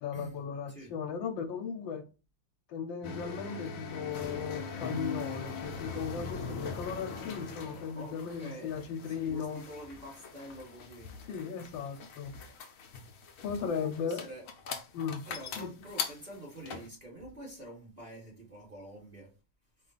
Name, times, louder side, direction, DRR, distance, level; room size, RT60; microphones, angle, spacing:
voice 1, 0.0-2.0 2.7-9.6 11.3-12.4 13.4-14.2 14.9-15.2 15.5-15.7, left 6 dB, 80° left, 1.4 m, -36 dB
sound 1, 3.0-16.9, left 5 dB, 65° left, 0.9 m, -41 dB
voice 2, 7.9-8.7 9.1-11.1 13.6-14.4 15.2-19.3, right 1 dB, 25° right, 1.3 m, -47 dB
4.5 x 2.3 x 4.0 m
omnidirectional pair, 2.1 m